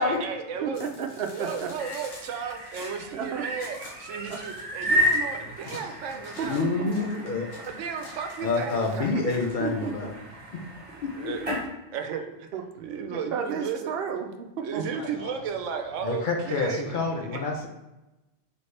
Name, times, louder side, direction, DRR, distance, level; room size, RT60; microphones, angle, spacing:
voice 1, 0.0-0.8 1.3-6.6 7.6-9.3 10.9-11.6 11.9-12.5 12.8-13.9 14.6-16.9 17.3-17.4, right 6 dB, 85° right, 5 dB, 0.9 m, -34 dB
voice 2, 0.6-1.7 3.1-3.4 4.3-4.4 6.4-7.1 9.6-10.1 12.5-12.6 13.1-14.8, right 6 dB, 65° right, 4 dB, 0.7 m, -32 dB
sound 1, 0.7-10.0, left 1 dB, 85° left, 1.3 m, -48 dB
sound 2, 1.5-11.7, equal, 30° right, 1.2 m, -33 dB
voice 3, 5.6-6.0 6.4-7.6 8.4-10.1 10.5-10.6 11.2-11.6 14.9-15.3 16.0-17.7, left 3 dB, 55° left, 1 dB, 0.6 m, -28 dB
4.2 x 3.2 x 3.2 m, 0.99 s
omnidirectional pair, 1.2 m